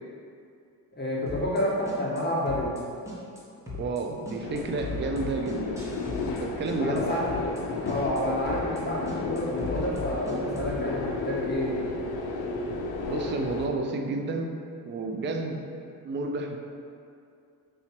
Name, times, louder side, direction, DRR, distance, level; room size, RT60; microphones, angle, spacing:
voice 1, 1.0-2.8 6.8-7.5 7.8-11.9, equal, 25° left, -6 dB, 1.0 m, -29 dB
sound 1, 1.3-1.6 1.9-2.8 3.1-3.4 3.7-4.0 4.3-6.4 6.7-7.0 7.3-7.6 7.9-8.2 8.5-8.8 9.1-10.8, left 3 dB, 5° right, 1.0 m, -38 dB
voice 2, 3.7-5.8 6.4-7.1 13.0-14.6 14.9-15.6 16.0-16.6, right 3 dB, 30° right, 3 dB, 0.4 m, -30 dB
sound 2, 4.4-13.7, left 3 dB, 70° left, 0.6 m, -33 dB
4.8 x 2.9 x 2.9 m, 2.4 s
cardioid pair, 75°, 40 cm